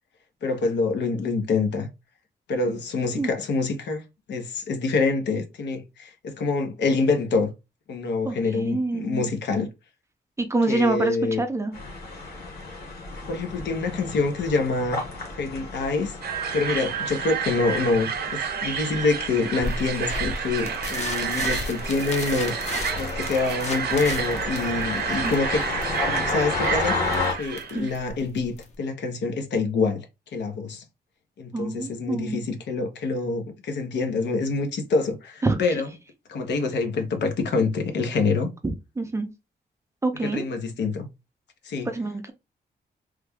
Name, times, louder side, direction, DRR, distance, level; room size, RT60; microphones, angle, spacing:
voice 1, 0.4-1.9 2.5-4.0 4.3-7.5 7.9-9.7 10.7-11.4 13.2-15.0 15.3-16.2 16.5-22.7 23.0-25.7 26.0-27.0 27.4-30.1 30.3-30.8 31.4-35.9 36.3-38.5 40.2-41.1 41.6-41.9, left 3 dB, 90° left, 0.8 m, -26 dB
voice 2, 8.2-9.3 10.4-11.7 25.2-25.4 27.7-27.9 31.5-32.4 35.4-35.6 38.6-39.3 40.0-40.5 41.9-42.3, right 2 dB, 15° right, 0.4 m, -26 dB
sound 1, 11.7-27.3, left 3 dB, 60° left, 1.2 m, -33 dB
sound 2, 16.2-27.9, right 8 dB, 65° right, 0.5 m, -30 dB
sound 3, 19.6-28.8, left 3 dB, 40° left, 0.6 m, -35 dB
3.2 x 2.3 x 3.4 m
wide cardioid pair, 175°, 18 cm